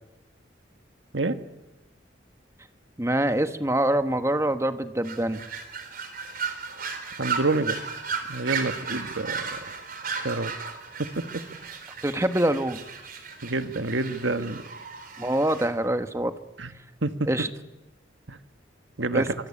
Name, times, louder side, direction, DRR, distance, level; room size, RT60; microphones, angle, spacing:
voice 1, 3.0-5.4 12.0-12.8 15.2-16.3 17.3-17.5 19.1-19.3, right 1 dB, 15° right, 8 dB, 1.4 m, -25 dB
sound 1, 5.0-15.7, right 5 dB, 50° right, 4.1 m, -35 dB
voice 2, 7.2-7.8 8.3-9.6 10.2-10.5 11.0-11.2 13.4-14.6 16.6-16.7 17.0-17.3 18.3-18.4 19.0-19.3, right 2 dB, 80° right, 9 dB, 1.6 m, -27 dB
26.0 x 24.5 x 8.7 m, 0.98 s
head